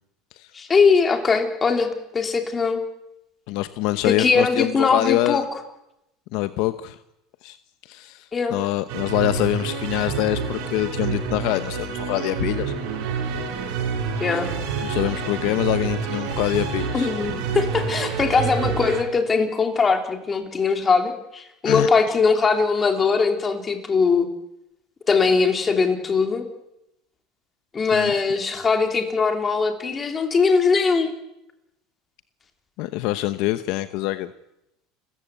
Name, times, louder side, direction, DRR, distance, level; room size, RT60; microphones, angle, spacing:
voice 1, 0.5-2.8 4.0-5.4 8.3-8.6 14.2-14.5 16.9-24.3 25.1-26.5 27.7-31.1, left 4 dB, 20° left, 5 dB, 3.1 m, -21 dB
voice 2, 3.5-5.5 6.3-7.0 7.4-7.6 7.8-12.7 14.3-14.4 14.8-17.1 21.6-21.9 27.9-28.1 32.8-34.3, left 16 dB, 60° left, 12 dB, 1.0 m, -25 dB
sound 1, 8.9-19.0, right 6 dB, 65° right, 6.5 m, -28 dB
29.5 x 14.5 x 8.3 m, 0.86 s
cardioid pair, 150°, 0 cm